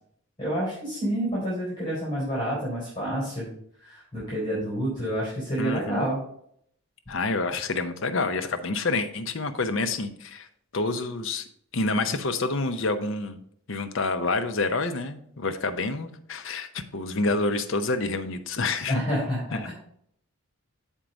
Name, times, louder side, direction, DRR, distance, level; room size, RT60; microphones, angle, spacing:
voice 1, 0.4-3.5 3.8-6.2 18.9-19.7, equal, 20° left, -8 dB, 3.5 m, -28 dB
voice 2, 5.6-6.0 7.1-10.5 10.7-11.5 11.7-13.4 13.7-19.0 19.5-19.7, left 3 dB, 60° left, 8 dB, 0.7 m, -28 dB
7.4 x 4.5 x 5.1 m, 0.68 s
head